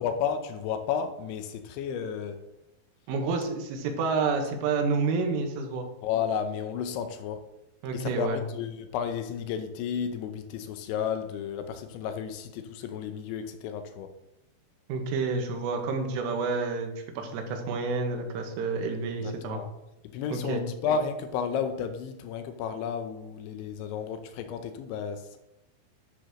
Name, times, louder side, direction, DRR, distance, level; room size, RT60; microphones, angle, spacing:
voice 1, 0.0-2.4 6.0-7.4 7.9-14.1 19.2-19.7 20.0-25.4, left 7 dB, 80° left, 8 dB, 2.9 m, -32 dB
voice 2, 3.1-5.9 7.8-8.4 14.9-19.6 20.3-20.6, right 4 dB, 90° right, 4 dB, 3.9 m, -29 dB
11.5 x 10.0 x 3.0 m, 0.90 s
omnidirectional pair, 5.6 m